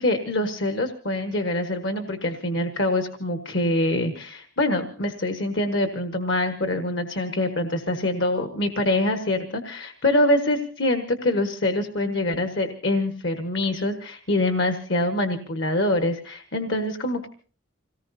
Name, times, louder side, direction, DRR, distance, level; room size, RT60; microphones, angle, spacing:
voice 1, 0.0-17.3, left 1 dB, 60° left, 7 dB, 1.4 m, -25 dB
27.0 x 18.5 x 2.7 m, 0.40 s
head